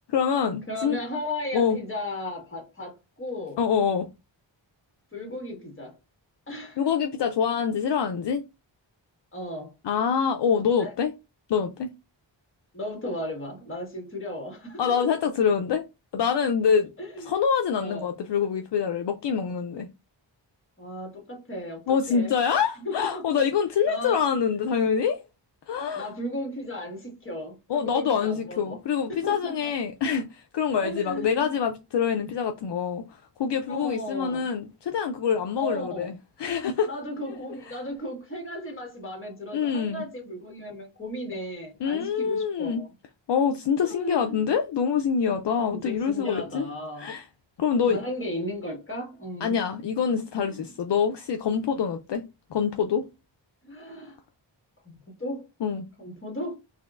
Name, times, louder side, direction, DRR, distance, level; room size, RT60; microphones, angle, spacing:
voice 1, 0.1-1.0 1.5-1.8 3.6-4.1 6.8-8.4 9.8-11.1 11.5-11.9 14.8-15.8 16.1-16.9 17.3-19.9 21.9-25.2 25.7-26.1 27.7-33.0 33.4-36.9 37.7-37.8 39.5-40.0 41.8-42.8 43.3-46.6 47.0-47.3 47.6-48.0 49.4-52.2 52.5-53.0 55.6-55.9, left 7 dB, 65° left, 0.5 m, -25 dB
voice 2, 0.7-3.6 5.1-6.0 6.5-6.8 9.3-9.7 10.6-10.9 12.7-15.2 17.0-17.3 17.8-18.1 20.8-23.3 23.8-24.2 25.9-28.7 29.2-29.7 30.8-31.5 33.7-34.5 35.6-36.1 36.8-42.9 43.8-44.5 45.7-47.1 47.8-49.6 50.4-50.7 53.6-54.2 55.2-55.4 56.0-56.5, left 1 dB, 25° left, 1.6 m, -35 dB
4.2 x 3.0 x 2.4 m
wide cardioid pair, 125°, 46 cm